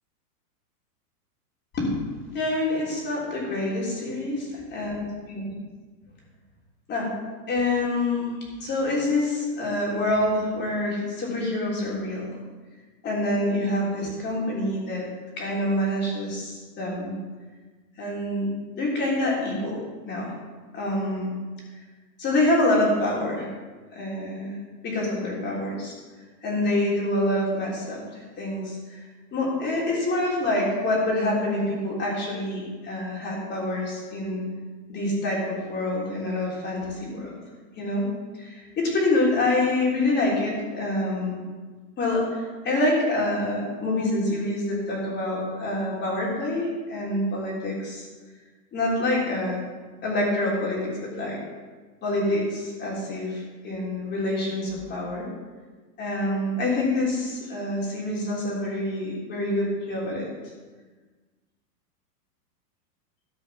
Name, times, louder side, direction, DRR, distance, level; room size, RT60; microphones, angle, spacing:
voice 1, 2.3-4.4 4.7-5.0 5.3-5.4 6.9-7.1 7.5-12.3 13.0-15.1 15.4-17.1 18.0-18.5 18.8-19.8 20.1-20.3 20.7-21.3 22.2-23.5 23.9-24.5 24.8-25.9 26.4-28.8 29.3-34.4 34.9-37.3 37.8-38.1 38.3-41.4 42.0-48.1 48.7-49.6 50.0-51.4 52.0-55.3 56.0-60.3, left 1 dB, 25° left, -3 dB, 3.6 m, -26 dB
14.0 x 5.5 x 5.9 m, 1.4 s
hypercardioid pair, 140°, 46 cm